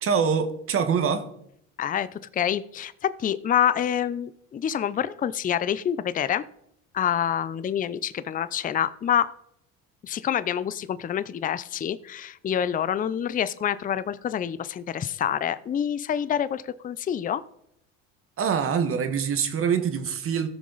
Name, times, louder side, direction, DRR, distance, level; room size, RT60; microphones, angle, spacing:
voice 1, 0.0-1.3 18.4-20.5, right 6 dB, 45° right, 10 dB, 1.3 m, -24 dB
voice 2, 1.8-6.4 6.9-9.3 10.0-17.4, left 9 dB, 30° left, 15 dB, 0.5 m, -27 dB
14.5 x 6.4 x 4.0 m, 0.74 s
supercardioid pair, 90°, 30 cm